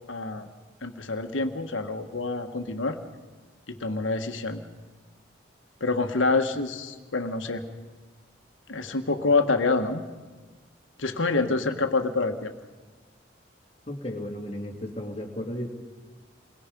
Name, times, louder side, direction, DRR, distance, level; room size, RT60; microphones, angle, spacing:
voice 1, 0.1-0.5 0.8-3.0 3.7-4.6 5.8-7.6 8.7-10.0 11.0-12.5, left 3 dB, 90° left, 6 dB, 1.6 m, -26 dB
voice 2, 13.9-15.7, left 1 dB, 30° left, 0 dB, 2.7 m, -34 dB
29.0 x 22.5 x 5.4 m, 1.3 s
head